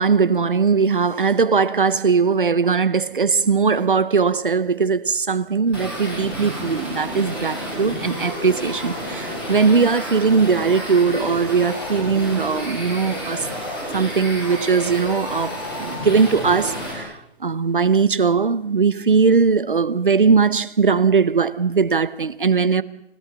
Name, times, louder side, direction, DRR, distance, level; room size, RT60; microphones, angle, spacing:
voice 1, 0.0-13.5 13.9-17.1 17.4-22.8, right 5 dB, 50° right, 0.8 m, -19 dB
sound 1, 5.7-16.9, equal, 5° right, 2.4 m, -30 dB
28.0 x 17.0 x 7.4 m
hypercardioid pair, 180°, 34 cm